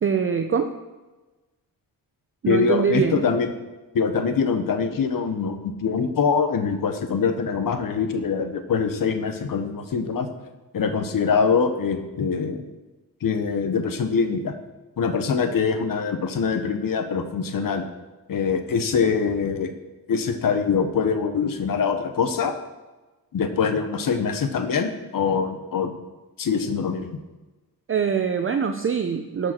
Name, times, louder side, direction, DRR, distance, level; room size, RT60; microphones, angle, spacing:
voice 1, 0.0-0.7 2.4-3.2 27.9-29.5, right 6 dB, 35° right, 6 dB, 0.6 m, -23 dB
voice 2, 2.5-3.5 3.9-10.3 10.7-12.6 13.2-14.5 15.0-17.8 18.3-19.7 20.1-22.6 23.3-25.9 26.4-27.1, left 5 dB, 65° left, 7 dB, 1.0 m, -24 dB
12.5 x 4.9 x 4.4 m, 1.2 s
cardioid pair, 80°, 36 cm